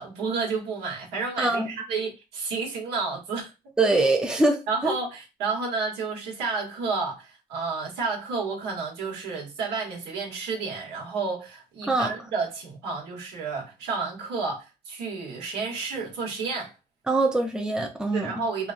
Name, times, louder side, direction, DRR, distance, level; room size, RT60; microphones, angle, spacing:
voice 1, 0.0-3.5 4.7-16.7 18.1-18.7, right 4 dB, 80° right, 1.2 m, -31 dB
voice 2, 3.8-4.9 11.9-12.1 17.1-18.3, right 2 dB, 5° right, 0.5 m, -23 dB
3.2 x 2.3 x 2.4 m
cardioid pair, 110°, 17 cm